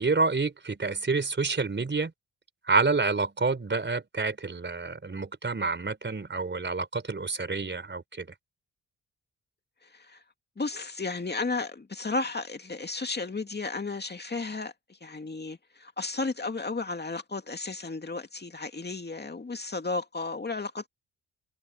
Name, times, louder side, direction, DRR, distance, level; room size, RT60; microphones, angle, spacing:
voice 1, 0.0-2.1 2.7-8.3, right 4 dB, 35° right, 4.6 m, -28 dB
voice 2, 9.8-10.2 10.6-20.9, left 3 dB, 30° left, 2.4 m, -33 dB
supercardioid pair, 50°, 34 cm